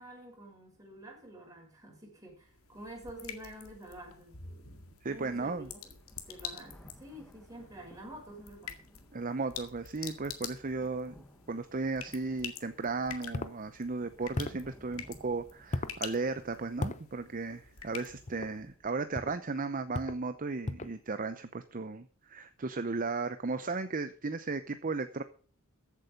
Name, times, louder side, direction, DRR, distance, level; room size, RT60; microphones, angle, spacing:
voice 1, 0.0-9.0 10.7-10.9, right 1 dB, 15° right, 0 dB, 6.2 m, -49 dB
sound 1, 2.3-18.7, left 8 dB, 75° left, 2.0 m, -47 dB
sound 2, 2.7-2.8 3.4-3.5 4.8-4.9 5.2-19.2, equal, 10° left, 1.4 m, -60 dB
voice 2, 5.0-5.7 9.1-11.1 11.5-25.2, right 3 dB, 40° right, 11 dB, 0.7 m, -35 dB
sound 3, 13.3-13.6 14.3-14.7 15.7-16.0 16.8-17.0 18.3-18.5 19.1-19.4 19.9-20.2 20.6-21.0, left 2 dB, 30° left, 0.8 m, -36 dB
14.5 x 8.3 x 5.3 m, 0.41 s
head